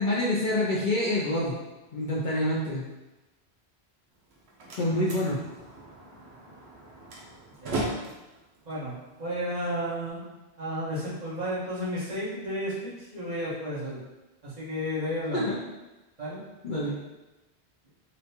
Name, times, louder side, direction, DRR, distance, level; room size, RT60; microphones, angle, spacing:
voice 1, 0.0-1.6 1.9-2.9 4.8-5.4 15.3-15.6 16.6-17.0, left 1 dB, 55° left, -6 dB, 0.6 m, -26 dB
Slam, 4.1-10.1, right 2 dB, 75° right, 1.0 m, -38 dB
voice 2, 7.5-8.0 8.6-8.9 9.2-10.2 10.6-14.0 14.4-15.5 16.2-16.4, equal, 40° right, -11 dB, 1.4 m, -32 dB
3.9 x 2.3 x 2.8 m, 1.1 s
omnidirectional pair, 1.1 m